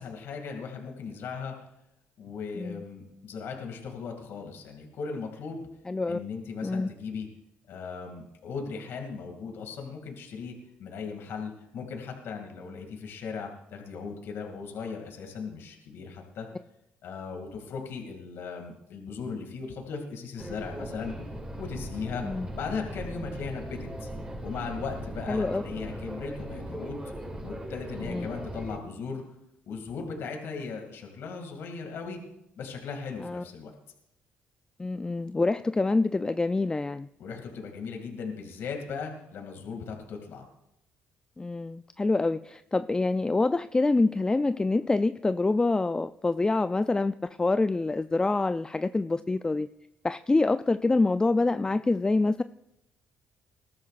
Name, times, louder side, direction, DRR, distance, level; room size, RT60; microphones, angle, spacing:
voice 1, 0.0-1.5 2.2-5.6 6.1-7.3 7.7-16.5 17.0-21.1 21.6-22.3 22.5-24.1 24.4-27.1 27.4-29.2 29.7-32.2 32.6-33.7 37.2-40.5, left 5 dB, 70° left, 2 dB, 2.5 m, -37 dB
voice 2, 5.9-6.2 6.6-6.9 22.2-22.5 25.3-25.6 28.1-28.3 33.2-33.4 34.8-37.1 41.4-49.7 50.0-52.4, left 3 dB, 20° left, 12 dB, 0.4 m, -26 dB
sound 1, 20.4-28.8, right 1 dB, 25° right, 5.9 m, -38 dB
20.5 x 13.0 x 2.5 m, 0.83 s
supercardioid pair, 70°, 4 cm